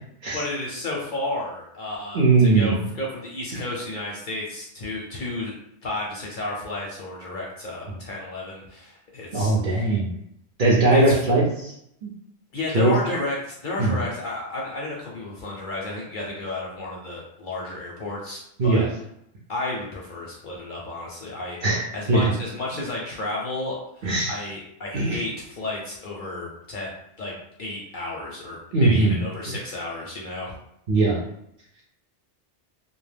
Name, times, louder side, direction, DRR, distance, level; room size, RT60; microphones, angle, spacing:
voice 1, 0.3-5.5 5.8-9.9 10.9-11.2 12.5-18.9 19.5-21.6 21.9-26.9 27.2-30.5, left 2 dB, 60° left, -3 dB, 0.6 m, -32 dB
voice 2, 2.1-2.8 9.3-10.1 10.6-11.7 12.0-12.1 12.7-12.9 13.8-14.0 18.6-18.9 21.6-22.3 24.0-24.3 24.9-25.2 28.7-29.6 30.9-31.2, right 2 dB, 60° right, -4 dB, 0.6 m, -20 dB
2.2 x 2.1 x 3.2 m, 0.76 s
omnidirectional pair, 1.2 m